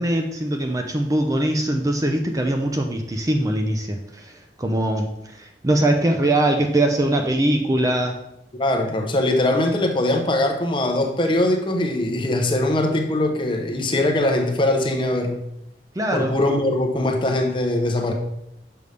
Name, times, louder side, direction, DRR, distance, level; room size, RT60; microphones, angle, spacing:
voice 1, 0.0-8.1 16.0-16.4, right 1 dB, 20° right, 4 dB, 0.4 m, -22 dB
voice 2, 8.6-15.4 16.1-18.1, left 1 dB, 30° left, 3 dB, 0.8 m, -21 dB
6.7 x 5.2 x 3.3 m, 0.78 s
head